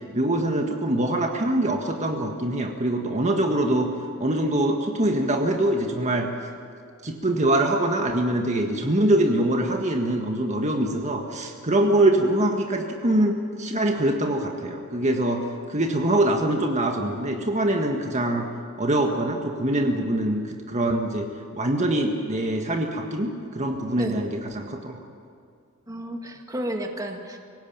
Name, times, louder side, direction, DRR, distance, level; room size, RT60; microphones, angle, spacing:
voice 1, 0.1-3.9 4.2-6.3 7.0-15.4 15.7-18.5 18.8-21.3 21.6-25.0, right 1 dB, 35° right, 2 dB, 1.7 m, -24 dB
voice 2, 25.9-27.4, equal, 15° right, 3 dB, 1.9 m, -32 dB
25.5 x 17.5 x 8.9 m, 2.4 s
head